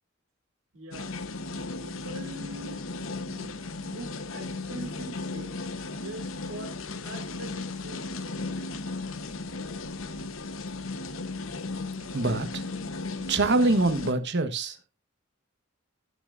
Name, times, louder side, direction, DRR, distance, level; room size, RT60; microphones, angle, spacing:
voice 1, 0.7-1.2 1.8-2.8 3.3-5.6 5.9-6.7 7.0-8.2, right 1 dB, 75° right, 3.1 m, -43 dB
sound 1, 0.9-14.1, left 3 dB, 75° left, 1.0 m, -36 dB
voice 2, 12.1-12.6 13.3-14.8, right 2 dB, 60° right, 1.3 m, -24 dB
18.5 x 6.7 x 2.6 m
head